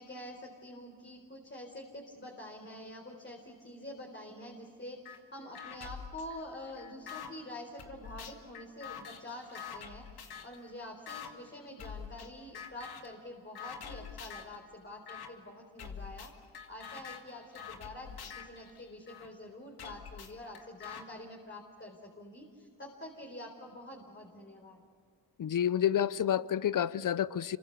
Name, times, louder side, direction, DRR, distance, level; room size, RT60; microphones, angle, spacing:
voice 1, 0.0-16.3 16.7-24.8, left 1 dB, 30° left, 4.2 m, -47 dB
sound 1, 5.0-5.2 5.5-7.3 7.8-10.6 11.1-11.3 11.8-12.3 12.5-13.1 13.5-14.6 15.1-15.3 15.8-19.3 19.8-21.0, left 7 dB, 80° left, 2.2 m, -46 dB
voice 2, 25.4-27.6, left 10 dB, 55° left, 0.8 m, -29 dB
27.0 x 24.0 x 6.9 m
cardioid pair, 60°, 37 cm